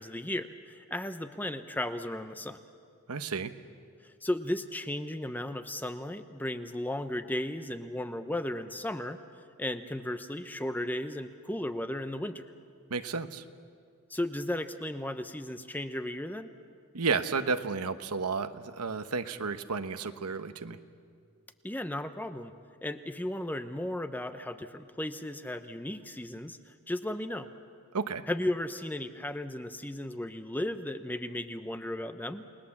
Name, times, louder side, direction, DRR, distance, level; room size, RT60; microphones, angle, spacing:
voice 1, 0.0-2.6 4.2-9.2 9.6-12.5 14.1-16.5 21.6-22.5 22.8-27.5 28.3-32.4, left 1 dB, 10° left, 10 dB, 0.7 m, -35 dB
voice 2, 3.1-3.5 12.9-13.4 16.9-20.8 27.9-28.2, right 4 dB, 90° right, 10 dB, 1.0 m, -32 dB
29.5 x 20.0 x 7.2 m, 2.2 s
head